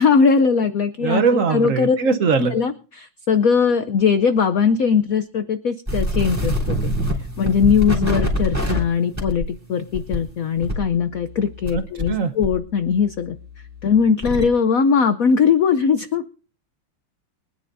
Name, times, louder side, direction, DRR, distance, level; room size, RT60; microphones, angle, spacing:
voice 1, 0.0-1.2 1.5-2.0 2.4-6.9 7.4-9.4 9.7-13.3 13.8-16.2, left 6 dB, 90° left, 10 dB, 0.7 m, -19 dB
voice 2, 1.0-2.5 11.7-11.8 12.1-12.3, right 5 dB, 55° right, 10 dB, 0.9 m, -20 dB
sound 1, 5.9-12.1 12.4-14.5, equal, 5° right, 3.3 m, -26 dB
24.0 x 10.0 x 2.6 m, 0.39 s
omnidirectional pair, 2.4 m